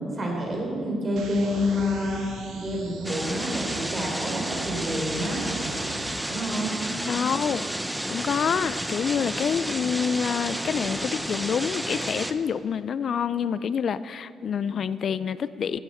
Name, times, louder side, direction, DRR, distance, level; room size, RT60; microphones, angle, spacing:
voice 1, 0.0-5.4 6.3-6.8, left 1 dB, 40° right, 0 dB, 3.5 m, -28 dB
sound 1, 1.2-6.2, right 3 dB, 80° right, 1.5 m, -39 dB
sound 2, 3.0-12.3, right 1 dB, 10° right, 0.7 m, -31 dB
voice 2, 7.1-7.7 8.1-15.8, left 7 dB, 60° left, 15 dB, 0.3 m, -27 dB
16.0 x 9.0 x 4.3 m, 2.4 s
cardioid pair, 80°, 0 cm